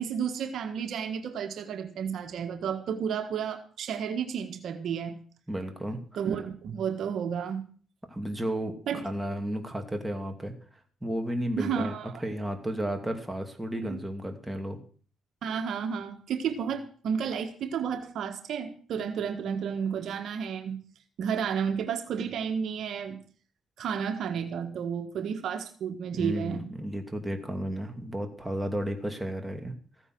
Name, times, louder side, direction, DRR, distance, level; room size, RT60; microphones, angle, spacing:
voice 1, 0.0-5.2 6.2-7.7 8.9-9.0 11.6-12.1 13.7-14.0 15.4-20.8 21.2-23.2 23.8-26.7, right 7 dB, 70° right, 7 dB, 1.5 m, -32 dB
voice 2, 5.5-6.0 8.1-10.5 11.0-11.9 12.2-14.8 26.1-29.7, right 1 dB, 5° right, 4 dB, 2.6 m, -33 dB
15.0 x 9.1 x 6.1 m, 0.43 s
cardioid pair, 90°, 0 cm